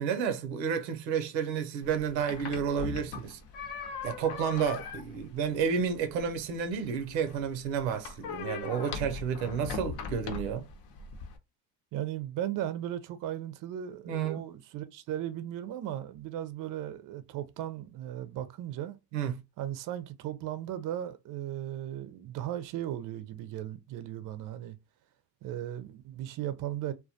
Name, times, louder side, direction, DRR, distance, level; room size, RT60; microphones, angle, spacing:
voice 1, 0.0-3.4 4.0-10.7 14.1-14.4 19.1-19.4, right 7 dB, 85° right, 0.6 m, -31 dB
sound 1, 1.8-11.4, left 6 dB, 55° left, 0.7 m, -41 dB
voice 2, 11.9-19.0 19.6-24.8 25.4-26.9, right 12 dB, 40° right, 0.5 m, -36 dB
2.2 x 2.1 x 2.6 m
hypercardioid pair, 70°, 50 cm